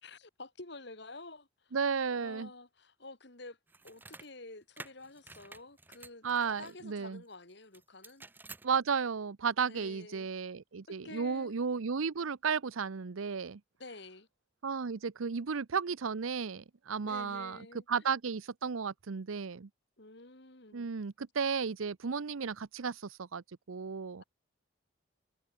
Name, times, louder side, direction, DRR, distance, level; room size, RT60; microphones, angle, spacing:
voice 1, 0.0-1.8 2.2-3.6 3.8-8.3 9.7-10.3 10.9-11.6 13.8-14.3 17.0-18.1 20.0-20.9, left 2 dB, 55° left, 2.6 m, -50 dB
voice 2, 1.7-2.5 6.2-7.2 8.6-13.6 14.6-17.6 17.9-19.7 20.7-24.2, right 6 dB, 85° right, 0.7 m, -34 dB
sound 1, 3.7-4.3 4.8-6.8 7.7-8.7, right 3 dB, 10° right, 0.4 m, -51 dB
head